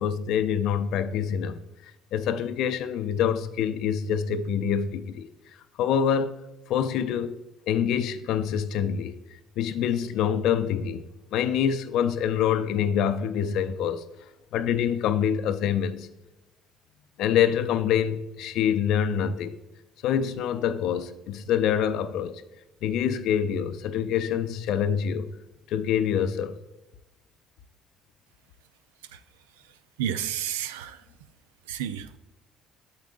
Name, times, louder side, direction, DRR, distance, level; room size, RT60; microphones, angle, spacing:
voice 1, 0.0-1.6 2.1-5.3 5.8-6.4 6.7-7.4 7.7-9.1 9.6-11.0 11.3-14.0 14.5-16.1 17.2-19.6 20.0-22.4 22.8-25.3 25.7-26.6, left 8 dB, 60° left, 0.5 m, -26 dB
voice 2, 30.0-31.0 31.7-32.2, right 10 dB, 75° right, 0.4 m, -31 dB
9.2 x 7.1 x 2.5 m
figure-of-eight pair, 55°, 0 cm